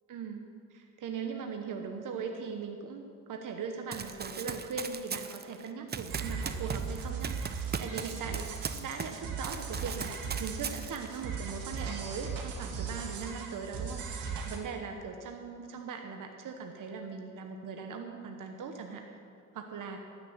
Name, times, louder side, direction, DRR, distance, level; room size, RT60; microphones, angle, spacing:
voice 1, 0.1-19.2 19.5-20.0, right 5 dB, 65° right, 4 dB, 1.2 m, -40 dB
Run, 3.9-9.2 9.4-11.2, right 6 dB, 30° right, 0.7 m, -39 dB
sound 1, 6.1-14.6, right 5 dB, 80° right, 1.8 m, -38 dB
sound 2, 8.9-9.1 10.2-10.3 11.8-11.9 13.2-13.3, left 3 dB, 30° left, 1.9 m, -54 dB
13.0 x 6.6 x 9.5 m, 2.2 s
cardioid pair, 95°, 34 cm